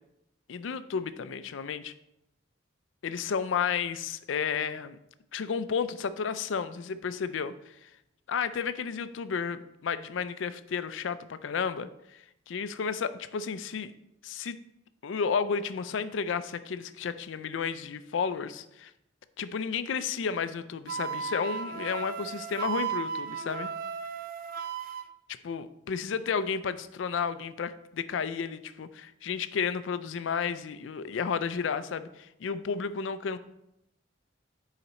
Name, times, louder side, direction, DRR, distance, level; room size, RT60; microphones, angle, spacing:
voice 1, 0.5-1.9 3.0-5.0 5.3-7.5 7.8-7.9 8.3-11.9 12.5-13.9 14.2-14.6 15.0-18.9 19.4-23.7 25.4-33.4, left 6 dB, 75° left, 14 dB, 0.4 m, -32 dB
Wind instrument woodwind instrument, 20.9-25.1, right 6 dB, 50° right, 0.4 m, -35 dB
6.8 x 4.9 x 4.2 m, 0.86 s
head